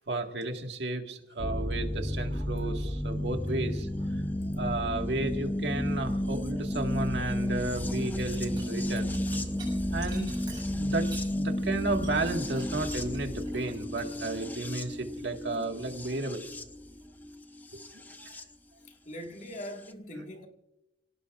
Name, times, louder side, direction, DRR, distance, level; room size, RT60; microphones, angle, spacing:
voice 1, 0.1-4.2 4.6-9.1 9.9-10.3 10.8-11.1 11.3-16.5 17.7-17.8 18.2-18.3 20.1-20.2, right 2 dB, 80° right, 1.8 m, -33 dB
sound 1, 1.4-18.4 19.6-19.7, left 1 dB, 10° left, 0.6 m, -32 dB
sound 2, 8.0-11.3 11.6-14.1, right 4 dB, 25° right, 6.8 m, -48 dB
voice 2, 18.8-20.5, equal, 45° left, 1.9 m, -42 dB
29.5 x 18.0 x 2.5 m
head